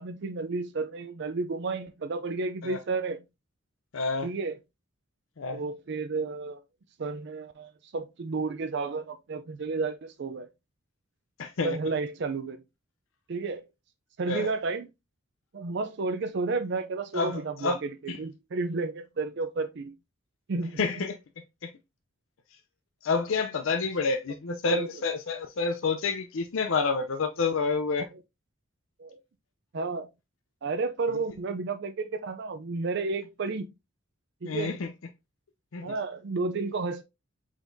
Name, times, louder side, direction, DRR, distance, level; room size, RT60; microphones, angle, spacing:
voice 1, 0.0-3.2 4.2-4.6 5.5-6.6 7.0-10.5 11.6-12.6 13.3-13.6 14.2-14.9 15.5-19.9 20.5-20.8 24.7-24.9 29.0-29.2 29.7-30.1 30.6-33.7 34.4-34.8 35.8-37.0, right 3 dB, 55° right, 0.4 m, -32 dB
voice 2, 3.9-4.3 5.4-5.6 11.4-11.8 14.3-14.5 17.1-17.8 18.1-18.2 20.8-21.2 21.6-21.7 23.0-28.1 34.4-34.9 35.7-35.9, left 4 dB, 70° left, 0.5 m, -28 dB
4.9 x 4.0 x 2.6 m
head